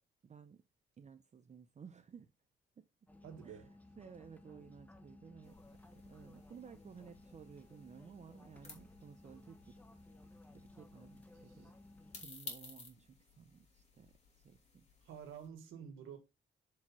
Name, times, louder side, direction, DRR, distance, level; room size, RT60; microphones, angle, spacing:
voice 1, 0.2-0.6 1.0-2.3 2.8-2.9 3.4-3.6 4.0-5.6 5.9-9.8 10.5-11.7 12.2-14.8, right 7 dB, 35° right, 0.6 m, -56 dB
sound 1, 3.1-12.2, left 2 dB, 10° left, 1.1 m, -58 dB
voice 2, 3.2-3.7 11.3-11.7 15.0-16.2, right 8 dB, 90° right, 1.7 m, -50 dB
sound 2, 5.4-15.5, left 3 dB, 35° left, 3.0 m, -56 dB
7.3 x 4.7 x 4.1 m
cardioid pair, 90°, 20 cm